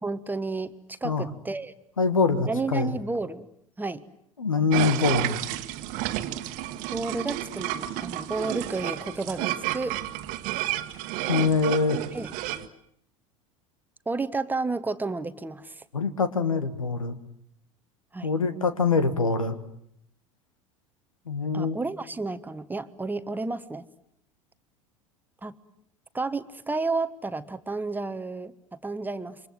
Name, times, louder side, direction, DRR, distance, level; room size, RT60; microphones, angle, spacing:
voice 1, 0.0-1.7 2.5-3.5 3.8-4.0 6.9-10.0 12.1-12.3 14.1-15.8 18.1-18.3 21.5-23.9 25.4-25.5 26.1-28.5 28.8-29.4, right 3 dB, 10° right, 12 dB, 1.2 m, -31 dB
voice 2, 2.0-2.9 4.4-5.4 11.3-12.0 15.9-17.2 18.2-19.6 21.3-21.8, left 4 dB, 80° left, 12 dB, 1.8 m, -24 dB
sound 1, 4.7-12.7, right 14 dB, 50° right, 1.4 m, -31 dB
28.0 x 24.5 x 7.7 m, 0.71 s
figure-of-eight pair, 75°, 17 cm